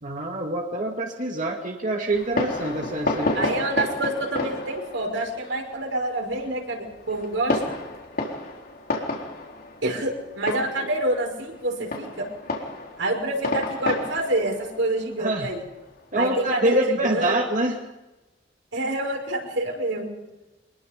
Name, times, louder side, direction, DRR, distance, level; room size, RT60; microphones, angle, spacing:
voice 1, 0.0-3.5 10.5-10.9 15.2-15.5 16.1-17.8, right 1 dB, 45° right, 1 dB, 2.3 m, -26 dB
Fireworks, 2.1-16.3, left 2 dB, 55° left, 4.0 m, -32 dB
voice 2, 3.3-7.8 9.8-12.3 13.0-15.6 16.2-17.3 18.7-20.1, right 1 dB, 90° right, 1 dB, 6.0 m, -27 dB
24.5 x 21.5 x 5.4 m, 1.0 s
head